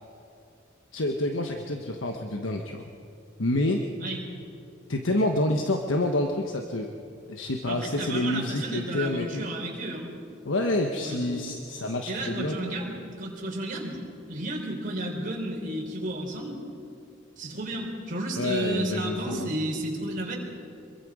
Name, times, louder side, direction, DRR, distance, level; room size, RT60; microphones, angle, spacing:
voice 1, 0.9-2.9 3.4-3.9 4.9-6.9 7.3-9.5 10.4-12.7 18.4-19.5, left 1 dB, 75° left, 3 dB, 1.2 m, -28 dB
voice 2, 7.6-10.1 11.0-11.4 12.1-14.0 14.3-16.6 17.4-20.4, right 1 dB, 45° right, -1 dB, 3.9 m, -32 dB
26.0 x 23.0 x 5.0 m, 2.7 s
head